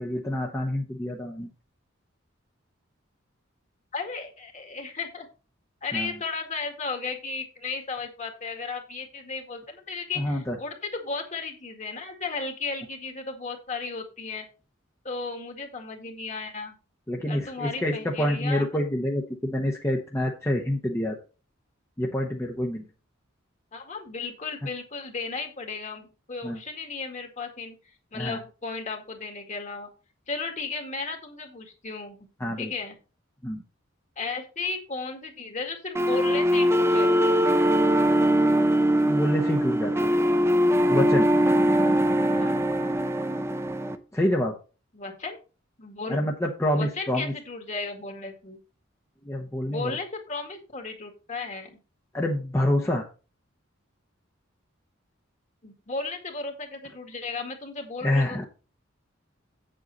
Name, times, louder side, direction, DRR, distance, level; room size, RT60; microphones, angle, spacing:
voice 1, 0.0-1.5 5.9-6.1 10.2-10.6 17.1-21.2 22.0-22.8 26.4-26.6 28.1-28.4 32.4-32.7 33.4-33.6 39.1-40.1 40.9-41.3 44.1-44.5 46.1-47.3 49.2-49.9 52.1-53.1 58.0-58.4, left 1 dB, 15° left, 0 dB, 1.0 m, -27 dB
voice 2, 3.9-5.3 5.8-14.5 15.0-16.8 17.3-18.7 23.7-27.8 28.1-29.9 30.3-32.3 32.6-33.0 34.2-37.4 42.3-42.5 44.9-45.4 45.8-46.2 46.7-48.6 49.7-51.8 55.6-58.5, left 4 dB, 40° left, 4 dB, 2.0 m, -35 dB
sound 1, 35.9-43.9, equal, 15° right, 0.7 m, -22 dB
8.1 x 7.7 x 4.1 m, 0.34 s
head